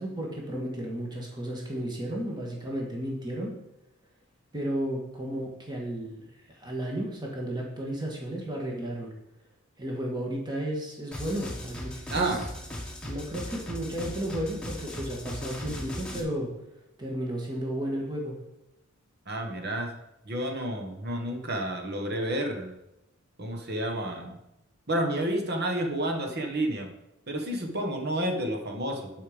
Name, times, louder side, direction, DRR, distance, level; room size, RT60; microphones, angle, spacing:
voice 1, 0.0-3.5 4.5-6.3 6.5-9.1 9.8-12.4 13.0-16.5 17.0-18.4, right 1 dB, 20° right, -1 dB, 2.1 m, -33 dB
sound 1, 11.1-16.2, left 1 dB, 5° left, 1.5 m, -38 dB
voice 2, 12.1-12.4 19.3-19.9 20.2-22.8 23.4-24.4 24.9-26.9 27.3-29.1, right 1 dB, 50° right, 3 dB, 1.7 m, -30 dB
10.5 x 5.7 x 5.3 m, 0.88 s
head